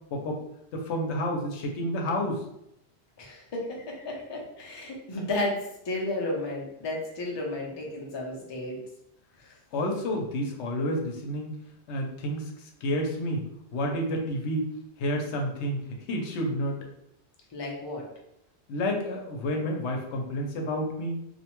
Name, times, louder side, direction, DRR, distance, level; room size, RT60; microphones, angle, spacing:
voice 1, 0.7-2.4 9.7-11.5 11.9-13.4 13.7-14.7 15.0-15.8 16.1-16.8 18.7-21.2, equal, 85° left, 1 dB, 0.9 m, -30 dB
voice 2, 3.2-8.8 9.4-9.6 17.5-18.1, left 1 dB, 35° left, -1 dB, 0.4 m, -33 dB
2.6 x 2.1 x 2.9 m, 0.79 s
omnidirectional pair, 1.1 m